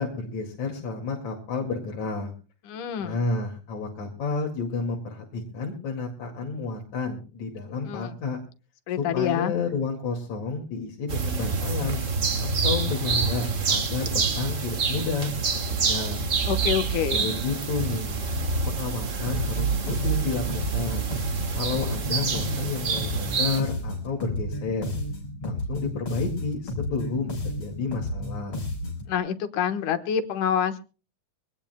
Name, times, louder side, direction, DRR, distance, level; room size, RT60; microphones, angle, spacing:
voice 1, 0.0-2.3 3.0-8.4 9.0-12.0 12.4-16.3 17.1-18.2 18.7-21.1 21.5-24.9 25.4-28.6, left 4 dB, 65° left, 0 dB, 3.5 m, -31 dB
voice 2, 2.7-3.2 7.9-8.2 8.9-9.5 16.5-17.3 29.1-30.8, left 9 dB, 90° left, 9 dB, 2.7 m, -27 dB
sound 1, 11.1-23.6, right 5 dB, 60° right, 0.7 m, -27 dB
sound 2, 19.3-29.1, left 1 dB, 50° left, 5.6 m, -32 dB
23.5 x 19.0 x 2.2 m, 0.35 s
omnidirectional pair, 3.5 m